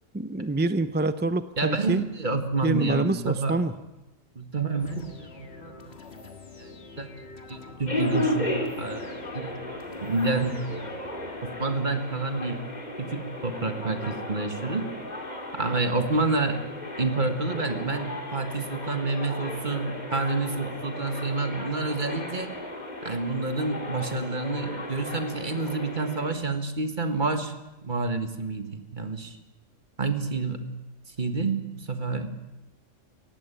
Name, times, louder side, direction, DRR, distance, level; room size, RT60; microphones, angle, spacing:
voice 1, 0.1-2.0 2.6-3.7, right 2 dB, 15° right, 12 dB, 0.3 m, -26 dB
voice 2, 1.6-3.7 4.4-6.0 6.6-6.7 7.0-9.6 10.0-10.6 11.4-12.6 13.0-14.9 15.5-16.7 17.0-22.5 23.0-27.5 27.8-29.4 30.0-30.6 31.2-32.3, right 3 dB, 40° right, 7 dB, 1.8 m, -29 dB
sound 1, 4.8-11.7, left 3 dB, 55° left, 1.9 m, -46 dB
sound 2, 7.9-26.3, left 1 dB, 35° left, 3.0 m, -35 dB
18.5 x 15.5 x 9.1 m, 1.0 s
omnidirectional pair, 1.3 m